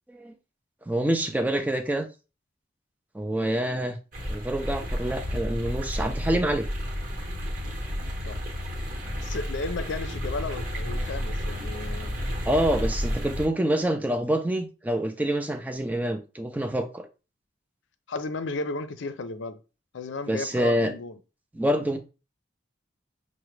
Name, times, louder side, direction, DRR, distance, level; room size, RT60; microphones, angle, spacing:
voice 1, 0.9-2.1 3.1-4.0 4.3-6.7 12.5-17.1 20.3-20.9 21.5-22.0, right 1 dB, 10° right, 0.4 m, -26 dB
sound 1, 4.1-13.5, equal, 45° right, 1.1 m, -31 dB
voice 2, 9.2-12.2 18.1-19.6 19.9-21.2, left 3 dB, 80° left, 0.5 m, -34 dB
5.8 x 2.1 x 3.2 m
head